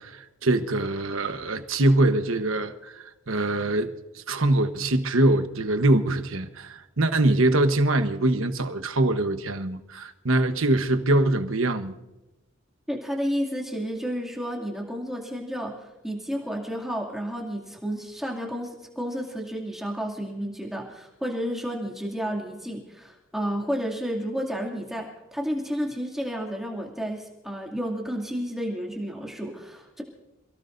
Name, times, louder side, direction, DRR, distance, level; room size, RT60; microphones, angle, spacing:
voice 1, 0.0-12.0, right 2 dB, 75° right, 1.2 m, -23 dB
voice 2, 12.9-30.0, equal, ahead, 2.4 m, -31 dB
27.5 x 17.0 x 2.7 m
head